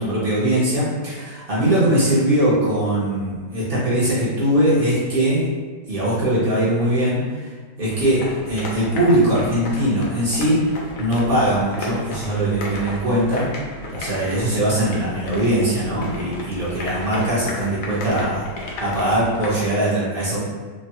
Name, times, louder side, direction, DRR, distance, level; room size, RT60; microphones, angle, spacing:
voice 1, 0.0-5.5 5.9-7.5 7.8-10.6 11.0-13.4 13.9-20.4, right 1 dB, 55° right, -9 dB, 0.6 m, -21 dB
sound 1, 7.9-19.7, left 1 dB, 75° left, 0.7 m, -34 dB
3.0 x 2.2 x 2.8 m, 1.5 s
omnidirectional pair, 1.9 m